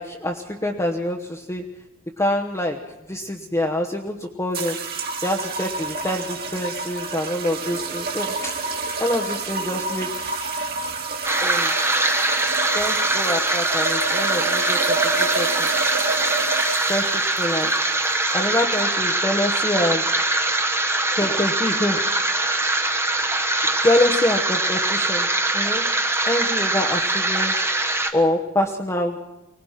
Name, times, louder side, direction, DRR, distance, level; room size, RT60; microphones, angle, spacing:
voice 1, 0.0-1.6 2.2-2.8 3.1-4.8 5.2-8.5 9.0-10.4 11.4-11.7 12.7-15.7 16.9-17.7 18.3-20.1 21.2-22.0 23.8-25.3 25.5-25.9 26.3-27.5 28.1-29.2, left 1 dB, 15° left, -1 dB, 1.1 m, -25 dB
sound 1, 4.5-18.8, right 3 dB, 45° right, 2.5 m, -29 dB
sound 2, 11.2-28.1, right 2 dB, 10° right, 1.2 m, -22 dB
24.0 x 18.5 x 5.8 m, 0.98 s
head